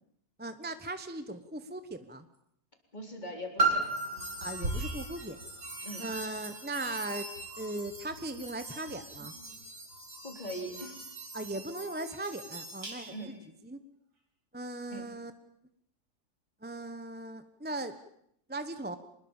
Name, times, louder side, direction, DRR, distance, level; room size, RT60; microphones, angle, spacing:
voice 1, 0.4-2.3 4.4-5.4 6.0-9.3 11.3-13.3 13.6-13.8 14.5-15.3 16.6-17.9 18.5-19.0, right 2 dB, 5° right, 10 dB, 0.9 m, -38 dB
voice 2, 2.9-3.9 5.8-6.1 10.2-11.0 13.1-13.4 14.9-15.1, equal, 25° left, 3 dB, 4.1 m, -41 dB
Piano, 3.6-9.0 9.7-9.8, right 3 dB, 30° right, 4.0 m, -35 dB
sound 1, 3.8-13.3, right 1 dB, 75° right, 5.9 m, -42 dB
25.5 x 21.0 x 7.3 m, 0.72 s
omnidirectional pair, 1.7 m